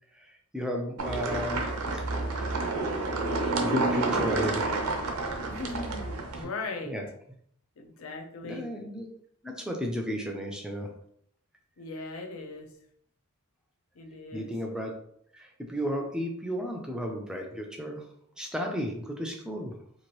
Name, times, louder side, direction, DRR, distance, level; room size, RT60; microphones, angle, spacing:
voice 1, 0.5-1.6 2.3-2.6 3.6-4.8 6.8-7.0 8.4-9.1 9.4-10.9 14.3-14.9 15.3-18.0 18.4-19.7, equal, 5° right, 1 dB, 0.3 m, -33 dB
sound 1, 1.0-6.4, right 3 dB, 85° right, 0.6 m, -29 dB
voice 2, 5.5-6.9 7.8-8.7 11.8-12.7 14.0-14.5, left 3 dB, 70° left, 3 dB, 0.6 m, -39 dB
2.9 x 2.5 x 3.0 m, 0.68 s
head